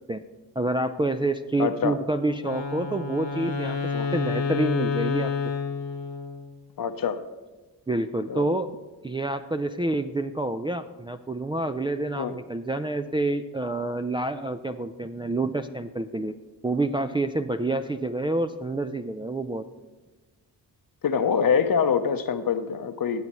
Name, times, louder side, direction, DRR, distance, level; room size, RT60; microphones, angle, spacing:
voice 1, 0.6-3.8 4.1-5.3 7.9-8.7 9.0-16.3 16.6-19.6, right 2 dB, 10° right, 6 dB, 0.3 m, -28 dB
voice 2, 1.6-2.0 3.9-4.1 6.8-7.2 8.3-8.5 12.2-12.4 21.0-23.2, left 7 dB, 50° left, 10 dB, 0.8 m, -25 dB
Wind instrument woodwind instrument, 2.4-6.6, left 5 dB, 80° left, 1.4 m, -29 dB
16.0 x 6.9 x 3.0 m, 1.2 s
supercardioid pair, 45°, 45 cm